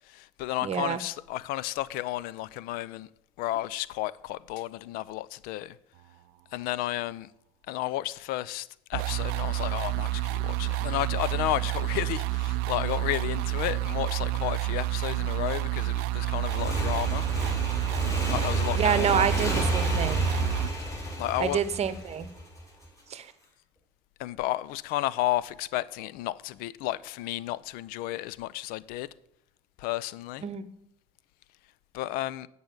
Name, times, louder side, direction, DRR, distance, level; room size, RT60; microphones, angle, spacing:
voice 1, 0.1-3.1 3.4-5.8 6.5-7.3 7.7-17.3 18.3-19.3 21.2-21.6 24.2-29.1 29.8-30.4 31.9-32.5, left 15 dB, 65° left, 0.5 m, -32 dB
voice 2, 0.6-1.0 18.8-20.2 21.4-22.3 23.1-23.3 30.4-30.7, right 8 dB, 40° right, 0.9 m, -27 dB
sound 1, 8.9-20.7, right 16 dB, 70° right, 0.4 m, -29 dB
Motorcycle / Engine, 16.5-22.9, equal, 20° left, 4.8 m, -31 dB
8.7 x 5.4 x 7.8 m
hypercardioid pair, 70°, 16 cm